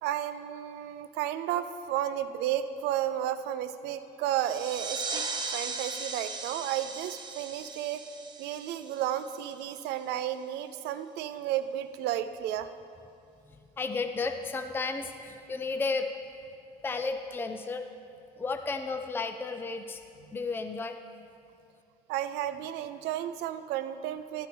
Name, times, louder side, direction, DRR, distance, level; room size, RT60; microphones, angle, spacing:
voice 1, 0.0-5.2 5.5-8.0 8.4-12.7 22.1-24.5, right 11 dB, 90° right, 11 dB, 0.5 m, -32 dB
sound 1, 4.3-9.7, right 4 dB, 25° right, 0.9 m, -38 dB
voice 2, 13.8-16.1 16.8-17.9 18.4-20.0 20.3-21.0, left 4 dB, 15° left, 7 dB, 0.4 m, -33 dB
13.0 x 9.2 x 3.4 m, 2.6 s
cardioid pair, 110°, 17 cm